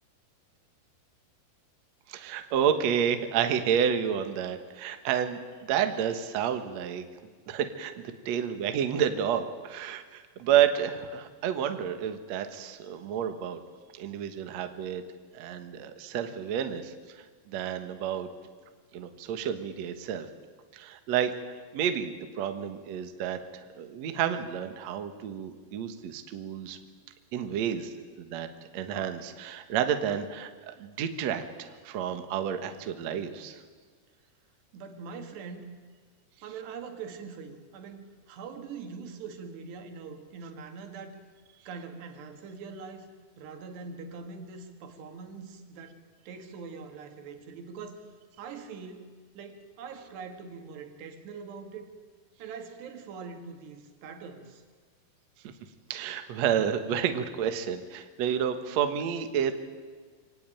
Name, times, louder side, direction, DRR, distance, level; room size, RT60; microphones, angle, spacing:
voice 1, 2.1-7.0 7.5-13.6 13.9-15.0 15.3-18.3 18.9-20.3 20.7-23.4 23.8-26.8 27.3-28.5 28.7-30.5 30.8-33.6 55.9-59.5, right 8 dB, 60° right, 8 dB, 2.0 m, -30 dB
voice 2, 34.7-35.7 36.4-41.2 41.7-43.1 43.4-46.0 46.3-48.0 48.4-49.1 49.4-51.9 52.4-54.6, right 5 dB, 85° right, 6 dB, 4.2 m, -43 dB
24.5 x 18.0 x 9.2 m, 1.5 s
omnidirectional pair, 4.7 m